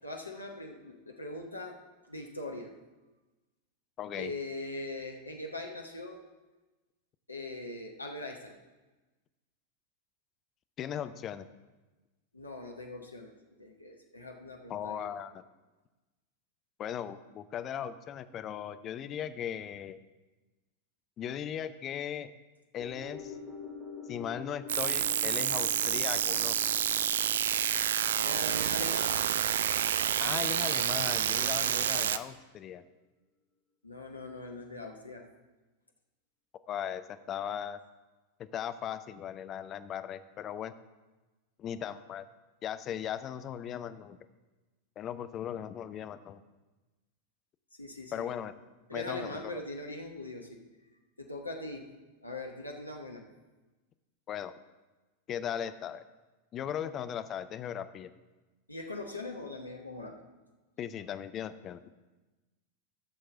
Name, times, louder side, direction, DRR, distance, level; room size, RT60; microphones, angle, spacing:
voice 1, 0.0-1.8 2.1-2.7 4.2-6.2 7.3-8.6 12.3-13.3 13.6-15.1 28.2-29.2 33.8-35.2 47.8-48.3 48.9-50.6 51.2-51.8 52.2-53.2 58.7-60.2, left 2 dB, 85° left, 2 dB, 1.0 m, -41 dB
voice 2, 4.0-4.3 10.8-11.5 14.7-15.4 16.8-20.0 21.2-22.3 22.7-23.4 24.1-26.6 30.2-32.8 36.7-37.8 38.4-40.7 41.6-42.3 42.6-44.2 45.0-46.4 48.1-48.5 48.9-49.6 54.3-54.5 55.3-56.1 56.5-58.1 60.8-61.8, left 9 dB, 30° left, 12 dB, 0.5 m, -38 dB
sound 1, 22.8-31.2 31.5-31.6, left 5 dB, 10° right, 2.0 m, -47 dB
sound 2, 24.7-32.2, right 9 dB, 60° right, 0.3 m, -29 dB
14.5 x 6.5 x 3.7 m, 1.2 s
figure-of-eight pair, 90°, 0 cm